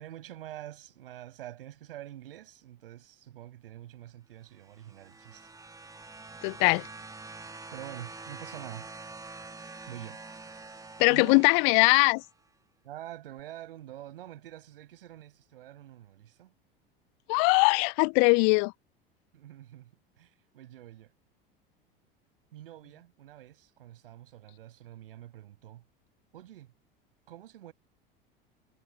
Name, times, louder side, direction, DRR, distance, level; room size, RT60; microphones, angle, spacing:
voice 1, 0.0-5.5 7.7-8.9 9.9-10.2 11.1-11.5 12.8-16.5 19.3-19.9 20.2-21.1 22.5-25.8 26.3-26.7 27.3-27.7, right 13 dB, 70° right, 6.6 m, -46 dB
sound 1, 4.6-12.3 13.4-13.5, right 3 dB, 10° right, 1.9 m, -46 dB
voice 2, 6.4-6.8 11.0-12.2 17.3-18.7, left 40 dB or more, 50° left, 0.6 m, -21 dB
figure-of-eight pair, 75°, 29 cm